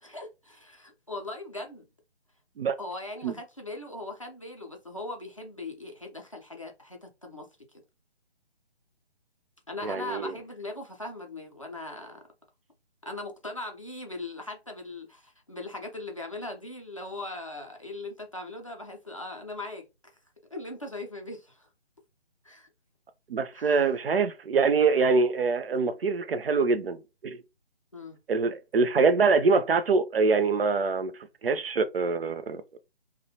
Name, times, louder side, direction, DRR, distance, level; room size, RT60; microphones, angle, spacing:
voice 1, 0.0-1.8 2.8-7.5 7.7-7.8 9.7-12.2 13.0-19.8 20.5-21.7 22.4-22.7 23.5-23.9 27.9-28.2, left 2 dB, 30° left, 0.4 m, -39 dB
voice 2, 9.8-10.3 23.3-27.4 28.3-31.1 31.4-32.8, right 4 dB, 60° right, 0.4 m, -24 dB
2.5 x 2.1 x 2.7 m
figure-of-eight pair, 155°, 33 cm